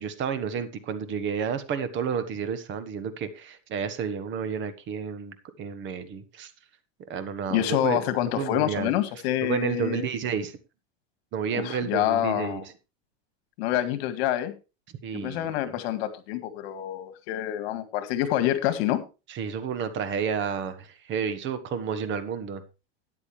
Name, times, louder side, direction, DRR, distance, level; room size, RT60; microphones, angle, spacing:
voice 1, 0.0-6.5 7.1-8.0 8.4-8.9 9.4-10.5 11.3-12.6 15.0-15.5 19.3-22.6, right 6 dB, 35° right, 11 dB, 1.4 m, -31 dB
voice 2, 7.5-10.0 11.5-12.6 13.6-14.5 15.1-19.0, left 12 dB, 70° left, 10 dB, 2.0 m, -27 dB
13.0 x 9.8 x 3.4 m, 0.29 s
supercardioid pair, 155°, 33 cm